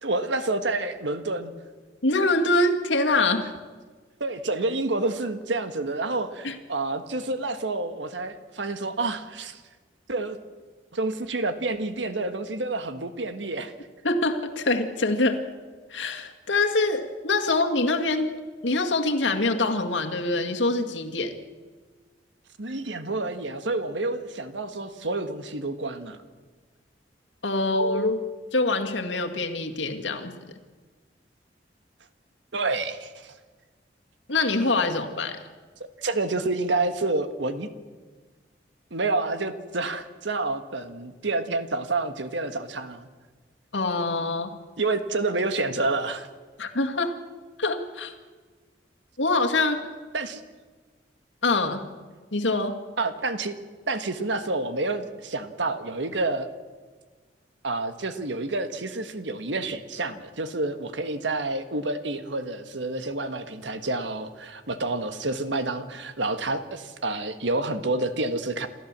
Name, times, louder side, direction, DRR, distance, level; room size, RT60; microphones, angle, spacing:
voice 1, 0.0-1.5 4.2-9.6 10.1-10.4 10.9-13.7 22.6-26.2 32.5-33.3 36.0-37.7 38.9-43.1 44.8-46.3 50.1-50.4 53.0-53.5 53.9-56.5 57.6-68.7, right 2 dB, 80° right, 10 dB, 1.5 m, -28 dB
voice 2, 2.0-3.5 6.4-6.6 14.0-15.4 15.9-18.3 18.6-21.4 27.4-28.2 28.5-30.3 34.3-35.4 43.7-44.5 46.6-47.1 47.6-48.1 49.2-49.8 51.4-51.8 52.3-52.7, left 2 dB, 90° left, 4 dB, 2.1 m, -24 dB
28.0 x 13.5 x 7.5 m, 1.4 s
head